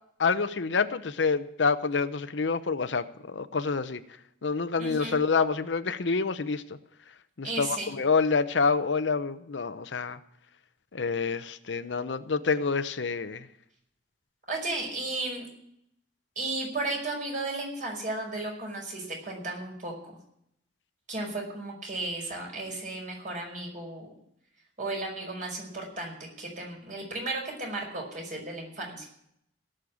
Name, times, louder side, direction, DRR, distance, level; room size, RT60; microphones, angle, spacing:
voice 1, 0.2-4.0 4.4-6.6 7.4-10.2 10.9-13.5, left 4 dB, 85° left, 12 dB, 0.8 m, -27 dB
voice 2, 4.8-5.2 7.4-7.9 14.5-15.5 16.4-19.9 21.1-24.1 24.8-29.1, right 2 dB, 45° right, 0 dB, 5.4 m, -34 dB
17.5 x 6.6 x 8.6 m, 0.74 s
head